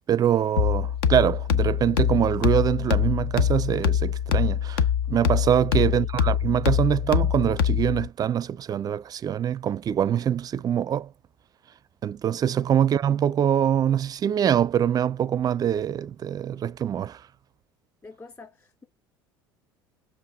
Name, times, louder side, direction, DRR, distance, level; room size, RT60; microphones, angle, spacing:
voice 1, 0.1-11.1 12.0-17.2, right 9 dB, 30° right, 0.4 m, -24 dB
sound 1, 0.6-8.1, left 8 dB, 70° left, 0.9 m, -24 dB
voice 2, 18.0-18.8, left 3 dB, 25° left, 3.2 m, -46 dB
7.5 x 3.4 x 5.0 m
hypercardioid pair, 65°, 12 cm